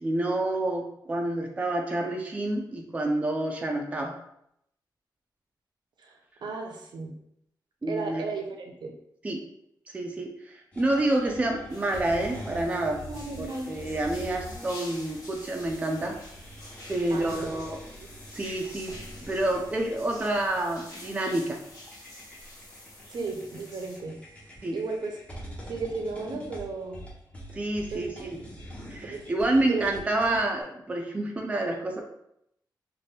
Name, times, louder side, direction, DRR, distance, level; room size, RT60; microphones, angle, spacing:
voice 1, 0.0-4.2 7.8-8.2 9.2-9.4 9.9-13.0 13.4-16.2 16.9-17.8 18.3-18.9 19.3-21.6 24.6-24.8 27.5-28.4 28.9-32.0, right 1 dB, 20° right, 2 dB, 0.4 m, -28 dB
voice 2, 6.0-7.1 7.9-8.9 13.1-13.7 17.1-17.7 18.0-18.1 23.1-24.2 24.7-25.2 25.6-27.1 27.9-28.3 29.1-29.3 29.7-29.9 30.3-30.4, right 4 dB, 75° right, 2 dB, 0.6 m, -35 dB
sound 1, 10.7-30.6, equal, 15° left, 0.6 m, -45 dB
sound 2, 11.7-24.0, left 1 dB, 50° left, 1.0 m, -48 dB
2.7 x 2.5 x 3.2 m, 0.75 s
wide cardioid pair, 165°, 8 cm